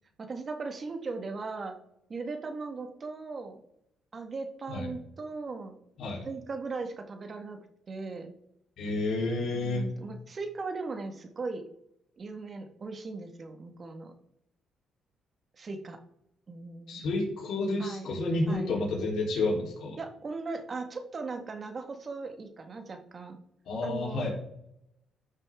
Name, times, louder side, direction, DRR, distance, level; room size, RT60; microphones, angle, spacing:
voice 1, 0.2-1.8 2.1-3.6 4.1-5.8 6.2-7.6 7.9-8.3 9.6-11.6 12.2-14.1 15.6-16.0 16.5-17.0 17.8-18.1 18.5-18.7 20.0-23.4 23.8-24.3, right 3 dB, 40° right, 6 dB, 1.7 m, -38 dB
voice 2, 8.8-9.9 16.9-20.0 23.7-24.3, left 2 dB, 70° left, -4 dB, 3.8 m, -30 dB
13.5 x 6.5 x 3.7 m, 0.80 s
cardioid pair, 90°, 0 cm